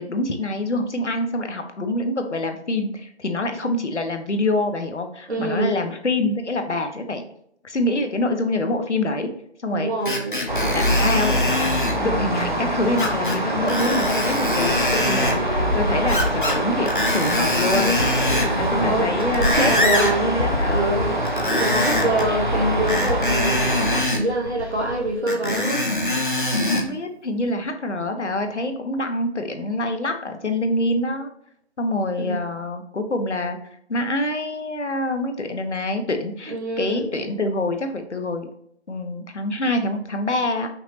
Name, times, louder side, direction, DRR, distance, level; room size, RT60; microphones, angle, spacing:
voice 1, 0.0-7.2 7.6-9.3 9.6-9.9 10.7-11.7 12.0-18.0 18.6-21.1 26.7-31.3 31.8-33.6 33.9-38.5 38.9-40.7, left 2 dB, 80° left, 6 dB, 0.9 m, -25 dB
voice 2, 5.3-5.8 9.7-10.5 17.7-21.1 21.5-26.0 32.2-32.4 36.5-37.1, right 1 dB, 65° right, 0 dB, 1.4 m, -26 dB
Screech, 10.1-12.0 13.0-13.4 13.7-15.4 16.1-16.6 16.9-18.5 19.1-20.2 21.3-22.3 22.9-24.2 25.3-26.9 27.5-27.6, left 2 dB, 45° left, 0.8 m, -24 dB
sound 1, 10.5-24.0, right 1 dB, 45° right, 0.6 m, -24 dB
sound 2, 15.6-25.1, left 2 dB, 30° left, 1.8 m, -30 dB
5.8 x 3.0 x 2.7 m, 0.68 s
figure-of-eight pair, 175°, 35 cm